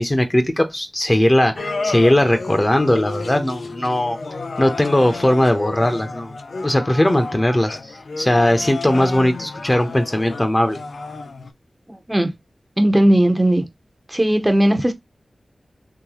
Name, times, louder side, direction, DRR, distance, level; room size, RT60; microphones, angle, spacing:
voice 1, 0.0-4.2 4.6-6.3 6.6-7.8 8.2-10.8, left 1 dB, 30° left, 1.1 m, -18 dB
sound 1, 1.6-11.5, left 3 dB, 80° left, 0.5 m, -31 dB
voice 2, 12.8-13.6 14.1-14.9, right 1 dB, 20° right, 0.9 m, -16 dB
3.8 x 3.1 x 3.0 m
cardioid pair, 40°, 0 cm